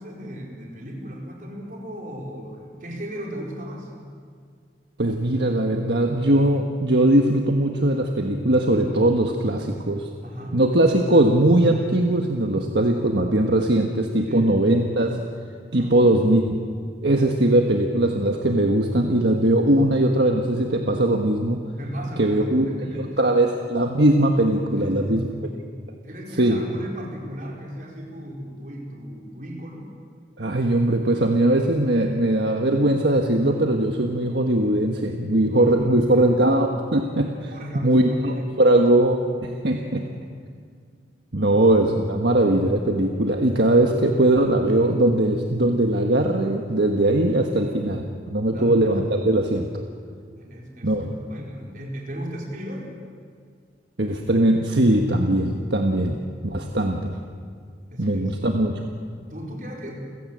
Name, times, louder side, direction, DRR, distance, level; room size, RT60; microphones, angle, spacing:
voice 1, 0.0-3.9 10.2-10.6 14.3-14.5 15.7-15.9 21.8-23.4 24.7-25.4 26.0-29.9 35.5-36.3 37.5-38.9 39.7-40.3 41.4-41.6 48.5-48.9 50.3-52.9 57.9-58.4 59.3-60.0, equal, 45° right, -1 dB, 4.7 m, -36 dB
voice 2, 5.0-10.1 10.5-15.2 15.7-16.5 17.0-21.6 22.2-22.7 22.9-25.3 26.4-26.6 30.4-37.5 37.8-40.0 41.3-49.8 50.8-51.1 54.0-56.2 56.5-57.2 58.0-58.9, right 1 dB, 70° right, 2 dB, 1.5 m, -20 dB
29.5 x 16.5 x 7.6 m, 2.1 s
head